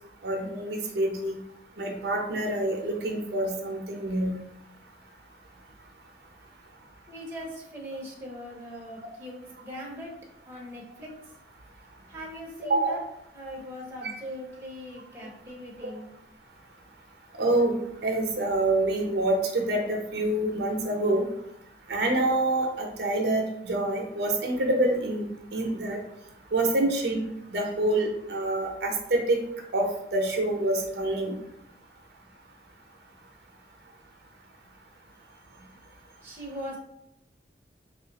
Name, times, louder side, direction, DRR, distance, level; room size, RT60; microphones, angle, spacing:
voice 1, 0.2-1.4 1.8-4.3 12.7-13.0 14.0-14.1 17.4-17.8 18.0-21.2 21.9-26.0 26.5-29.4 29.7-29.9 30.1-31.3, right 2 dB, 70° right, 1 dB, 0.7 m, -26 dB
voice 2, 7.1-10.1 10.5-11.1 12.1-13.0 13.3-16.1 36.2-36.8, equal, 15° right, -3 dB, 0.7 m, -40 dB
3.1 x 2.4 x 3.9 m, 0.79 s
head